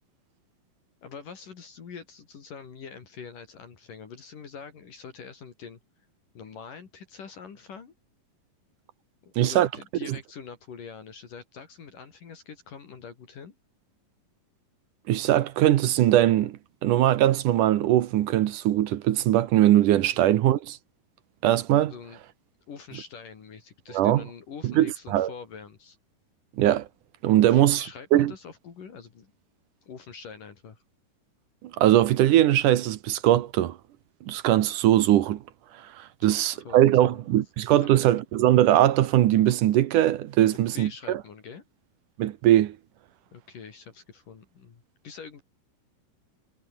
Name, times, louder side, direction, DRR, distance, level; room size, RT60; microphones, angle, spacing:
voice 1, 1.0-5.8 6.3-7.9 9.2-13.5 21.9-22.2 22.7-26.0 27.5-29.3 29.8-30.8 36.2-37.2 37.8-38.0 40.5-41.6 43.3-45.4, left 6 dB, 60° left, 4.8 m, -44 dB
voice 2, 9.4-9.7 15.1-20.8 21.4-21.9 23.9-24.2 24.6-25.3 26.6-26.9 27.2-27.9 28.1-28.3 31.8-33.8 34.3-35.4 36.0-41.2 42.2-42.8, right 13 dB, 70° right, 2.4 m, -21 dB
omnidirectional pair, 4.2 m